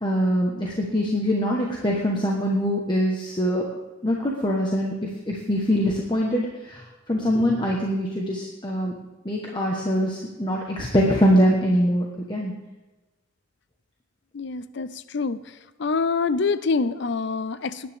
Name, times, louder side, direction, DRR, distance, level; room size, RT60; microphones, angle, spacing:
voice 1, 0.0-3.6 4.0-4.9 5.3-6.8 7.1-8.9 9.2-12.5, equal, 20° left, -2 dB, 1.3 m, -23 dB
voice 2, 14.3-15.4 15.8-17.9, left 4 dB, 60° left, 15 dB, 0.5 m, -26 dB
19.5 x 10.0 x 3.6 m, 1.1 s
head